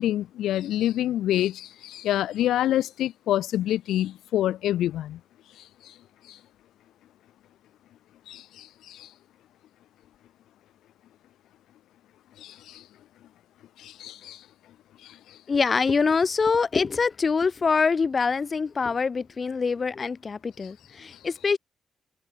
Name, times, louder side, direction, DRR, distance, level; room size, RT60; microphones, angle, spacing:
voice 1, 0.0-5.2 5.8-5.9 6.3-6.4 8.3-9.1 12.4-12.8 13.8-14.4 15.0-15.4, left 12 dB, 85° left, 0.6 m, -27 dB
voice 2, 15.5-21.6, left 5 dB, 40° left, 0.8 m, -24 dB
cardioid pair, 80°, 0 cm